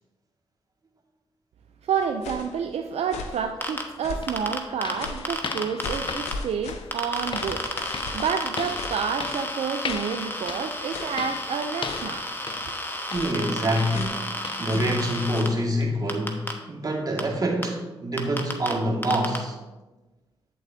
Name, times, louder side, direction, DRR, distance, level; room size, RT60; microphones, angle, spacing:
voice 1, 1.8-7.6 8.1-12.3, right 6 dB, 70° right, 5 dB, 0.4 m, -29 dB
sound 1, 2.0-2.6 3.0-3.5 4.0-4.4 5.0-5.4 5.8-9.5 9.9-10.1 10.9-11.3 11.8-12.3 13.1-13.4 13.9-14.2 14.7-15.0 15.3-15.6, left 3 dB, 90° left, 0.6 m, -38 dB
sound 2, 3.6-3.7 4.2-14.9 15.2-15.4 15.8-16.0 16.5-16.6 17.1-17.2, left 6 dB, 50° left, 0.4 m, -39 dB
sound 3, 3.6-3.8 4.3-6.3 6.9-15.5 16.1-16.5 17.2-17.3 17.6-17.7 18.2-18.7 19.0-19.4, left 1 dB, 20° left, 1.3 m, -32 dB
voice 2, 12.9-19.6, equal, 35° right, -1 dB, 1.9 m, -26 dB
8.4 x 8.3 x 2.7 m, 1.1 s
supercardioid pair, 40°, 11 cm